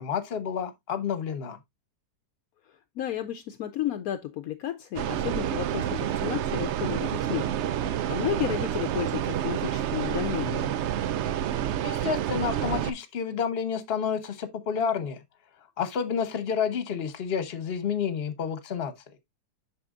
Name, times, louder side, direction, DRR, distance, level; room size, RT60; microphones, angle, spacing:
voice 1, 0.0-1.6 11.8-15.2 15.8-18.9, left 7 dB, 45° left, 1.1 m, -29 dB
voice 2, 3.0-7.5 7.8-10.7, left 11 dB, 70° left, 1.0 m, -32 dB
sound 1, 5.0-12.9, right 10 dB, 80° right, 0.6 m, -29 dB
7.7 x 6.1 x 2.4 m
omnidirectional pair, 1.7 m